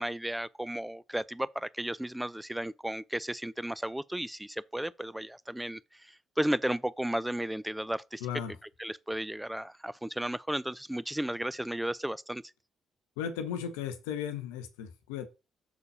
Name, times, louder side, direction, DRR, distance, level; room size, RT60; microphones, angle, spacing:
voice 1, 0.0-8.2 8.8-12.4, right 1 dB, 5° right, 0.6 m, -34 dB
voice 2, 8.2-8.5 13.2-15.3, left 8 dB, 85° left, 1.0 m, -36 dB
6.7 x 4.2 x 5.5 m
hypercardioid pair, 50°, 0 cm